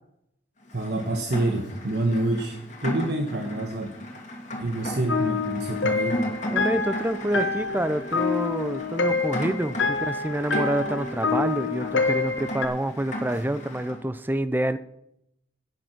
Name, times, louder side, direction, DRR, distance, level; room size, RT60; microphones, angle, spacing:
Rain, 0.7-14.0, equal, 40° left, 2.2 m, -36 dB
voice 1, 0.7-2.6 2.8-3.9 4.6-6.2, right 2 dB, 60° right, 3 dB, 1.2 m, -27 dB
sound 1, 5.1-12.7, left 4 dB, 75° left, 1.2 m, -27 dB
voice 2, 6.5-14.8, right 1 dB, 10° right, 13 dB, 0.4 m, -27 dB
10.5 x 9.3 x 6.0 m, 0.80 s
head